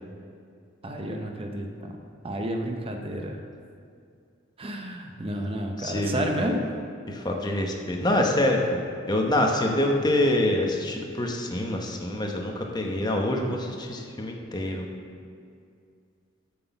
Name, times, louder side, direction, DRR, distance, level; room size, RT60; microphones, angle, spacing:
voice 1, 0.8-2.0 2.2-3.4 4.6-6.7, equal, 30° right, 3 dB, 0.6 m, -31 dB
voice 2, 5.8-6.6 7.1-8.8 9.1-14.8, left 1 dB, 20° left, 1 dB, 0.9 m, -26 dB
7.7 x 6.2 x 6.8 m, 2.3 s
head